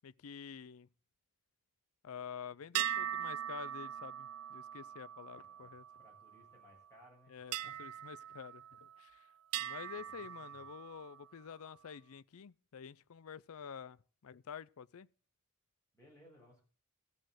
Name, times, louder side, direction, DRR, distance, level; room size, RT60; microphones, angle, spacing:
voice 1, 0.0-0.9 2.0-5.8 7.3-9.3 9.6-15.1, left 7 dB, 75° left, 0.5 m, -49 dB
sound 1, 2.7-6.4 7.5-9.1 9.5-11.2, right 10 dB, 85° right, 0.5 m, -41 dB
voice 2, 5.3-7.3 7.6-7.8 9.9-10.6 15.9-16.6, equal, 15° left, 7.5 m, -63 dB
14.5 x 6.4 x 7.9 m
head